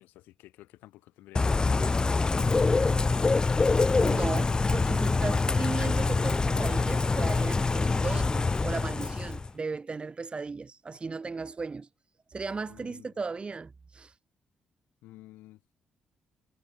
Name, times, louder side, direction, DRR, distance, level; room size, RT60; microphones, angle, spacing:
voice 1, 0.0-3.7 12.7-13.1 15.0-15.6, left 17 dB, 90° left, 3.8 m, -51 dB
Bird / Rain, 1.3-9.5, left 3 dB, 25° left, 0.3 m, -25 dB
voice 2, 3.9-11.9 12.3-14.1, right 4 dB, 35° right, 1.6 m, -36 dB
supercardioid pair, 60°, 3 cm